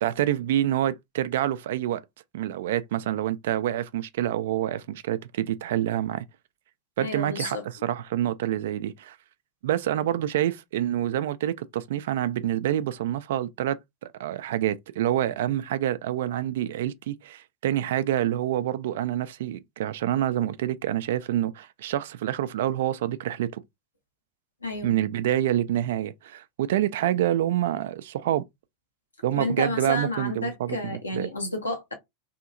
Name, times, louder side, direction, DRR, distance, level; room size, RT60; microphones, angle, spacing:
voice 1, 0.0-2.0 2.3-6.2 7.0-9.2 9.6-13.8 14.2-23.6 24.8-28.4 29.2-31.3, right 12 dB, 65° right, 0.3 m, -27 dB
voice 2, 7.0-7.6 24.6-24.9 29.3-31.9, left 2 dB, 85° left, 0.8 m, -31 dB
2.8 x 2.7 x 2.5 m
figure-of-eight pair, 90°, 0 cm